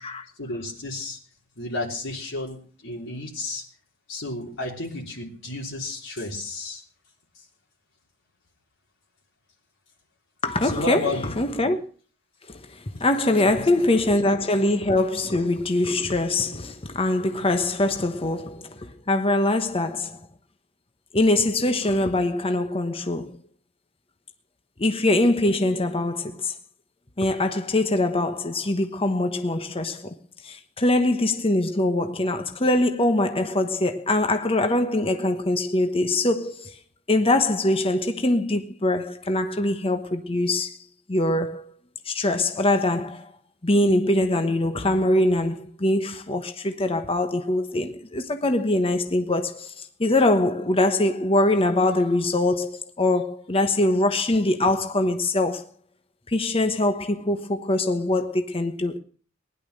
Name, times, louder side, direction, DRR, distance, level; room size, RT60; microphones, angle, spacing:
voice 1, 0.4-1.2 1.6-3.6 4.1-6.8 10.6-11.4 13.4-13.6, left 2 dB, 65° left, 3.4 m, -32 dB
voice 2, 10.4-11.8 12.5-20.2 21.1-23.4 24.8-26.5 27.2-30.1 30.4-36.8 37.1-40.8 41.1-41.7 42.0-43.3 43.6-55.6 56.3-59.0, left 2 dB, 30° left, 1.1 m, -23 dB
19.5 x 11.0 x 6.6 m
head